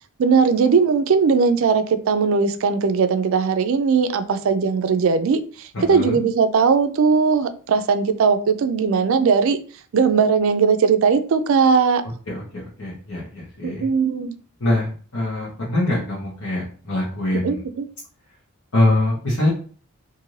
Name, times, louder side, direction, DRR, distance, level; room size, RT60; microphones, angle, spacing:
voice 1, 0.2-9.6 9.9-12.0 13.6-14.4 17.4-17.9, right 5 dB, 65° right, 10 dB, 0.4 m, -19 dB
voice 2, 5.7-6.2 12.3-13.9 14.6-17.5 18.7-19.5, left 1 dB, 70° left, -7 dB, 0.9 m, -23 dB
2.6 x 2.5 x 3.1 m, 0.41 s
head